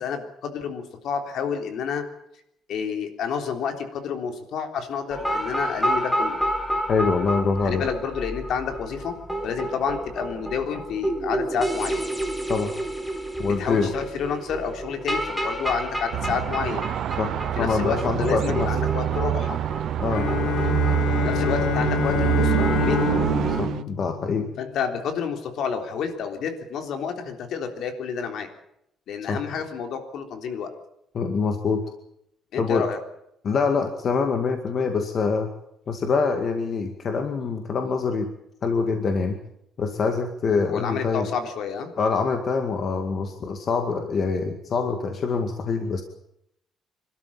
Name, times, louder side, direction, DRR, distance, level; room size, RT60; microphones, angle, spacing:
voice 1, 0.0-2.0 2.7-6.4 7.6-9.2 9.4-12.1 13.4-16.9 17.6-19.6 21.2-23.0 24.6-28.5 29.1-30.7 32.5-33.0 40.7-41.9, left 6 dB, 60° left, 6 dB, 3.6 m, -29 dB
sound 1, 5.1-23.6, right 1 dB, 5° left, 2.7 m, -30 dB
voice 2, 6.9-7.8 12.5-12.7 13.4-13.9 17.2-17.3 17.6-18.7 20.0-20.3 23.5-24.5 29.3-29.4 31.1-31.8 32.6-32.9 33.4-35.5 35.9-38.3 38.6-39.4 39.8-41.3 42.0-46.0, left 5 dB, 40° left, 5 dB, 2.1 m, -25 dB
sound 2, 16.1-23.8, right 12 dB, 60° right, 0.7 m, -25 dB
Bowed string instrument, 20.1-25.0, left 14 dB, 80° left, 1.1 m, -27 dB
27.0 x 13.0 x 8.9 m, 0.77 s
cardioid pair, 165°, 0 cm